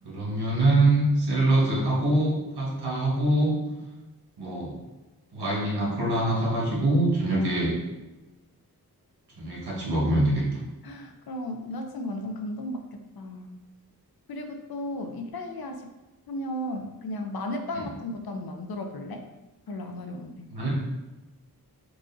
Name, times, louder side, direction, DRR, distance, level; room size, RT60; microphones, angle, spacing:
voice 1, 0.0-3.6 4.4-4.7 5.3-7.7 9.4-10.4 17.7-17.8 20.5-20.7, right 1 dB, 90° right, -4 dB, 1.2 m, -24 dB
voice 2, 10.8-13.6 14.3-15.9 16.3-19.2 19.7-20.4, left 1 dB, 70° left, 5 dB, 0.5 m, -35 dB
4.8 x 2.4 x 2.6 m, 1.1 s
wide cardioid pair, 75°, 38 cm